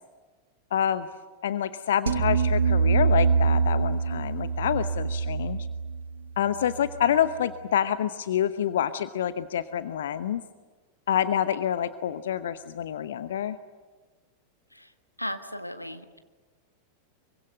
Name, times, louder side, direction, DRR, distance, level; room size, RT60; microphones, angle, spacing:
voice 1, 0.7-1.1 1.4-5.7 6.4-10.4 11.1-13.6, left 9 dB, 60° left, 13 dB, 0.9 m, -27 dB
sound 1, 2.1-7.3, right 5 dB, 70° right, 1.3 m, -25 dB
voice 2, 15.2-16.2, equal, 90° left, 9 dB, 1.6 m, -36 dB
25.0 x 23.5 x 9.3 m, 1.3 s
figure-of-eight pair, 90°, 0 cm